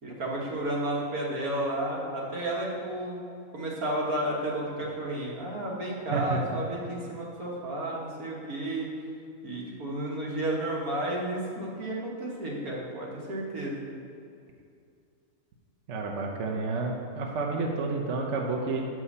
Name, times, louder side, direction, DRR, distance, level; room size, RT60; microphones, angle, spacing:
voice 1, 0.0-3.2 3.5-8.9 9.4-13.9, right 1 dB, 75° right, -4 dB, 1.9 m, -32 dB
voice 2, 15.9-18.8, right 3 dB, 60° right, 0 dB, 1.0 m, -30 dB
6.9 x 5.9 x 5.5 m, 2.5 s
omnidirectional pair, 1.6 m